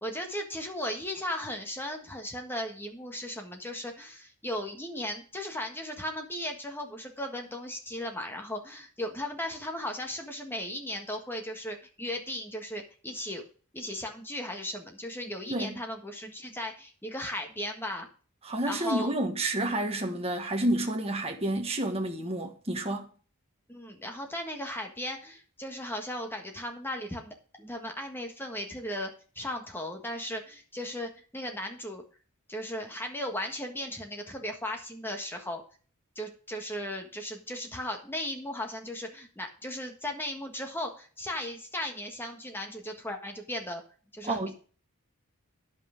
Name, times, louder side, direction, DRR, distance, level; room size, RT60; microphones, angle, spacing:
voice 1, 0.0-13.4 13.7-18.1 18.7-19.1 23.7-32.0 32.5-35.6 36.2-43.8 44.1-44.5, left 1 dB, 10° left, 1.6 m, -36 dB
voice 2, 18.4-23.1 44.2-44.5, right 1 dB, 25° right, 1.3 m, -30 dB
10.5 x 5.8 x 5.1 m
head